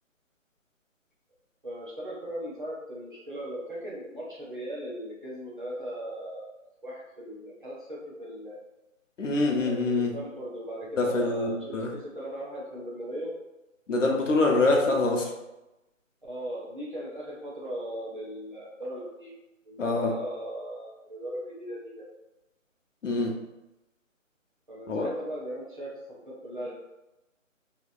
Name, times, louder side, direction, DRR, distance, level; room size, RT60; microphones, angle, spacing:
voice 1, 1.6-6.5 6.8-8.6 9.5-13.3 16.3-19.3 19.6-22.1 24.7-26.7, right 1 dB, 40° right, -6 dB, 0.6 m, -38 dB
voice 2, 9.2-10.1 11.0-11.9 13.9-15.3 19.8-20.1 23.0-23.3 24.9-25.1, left 2 dB, 65° left, 1 dB, 0.7 m, -25 dB
2.8 x 2.0 x 2.5 m, 0.95 s
hypercardioid pair, 175°, 40 cm